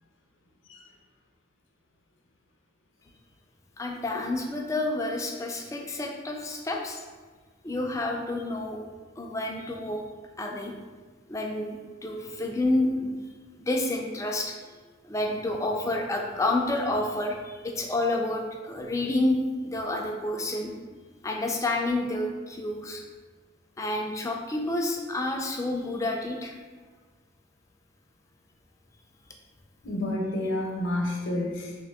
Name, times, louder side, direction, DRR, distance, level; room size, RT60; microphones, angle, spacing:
voice 1, 3.8-7.0 7.6-8.8 9.2-10.0 10.4-10.7 11.3-13.1 13.6-14.5 15.0-20.7 21.2-23.0 23.8-26.5, left 2 dB, 15° left, 1 dB, 0.4 m, -29 dB
voice 2, 29.8-31.7, left 1 dB, 65° left, -2 dB, 0.7 m, -29 dB
3.6 x 3.0 x 3.4 m, 1.4 s
head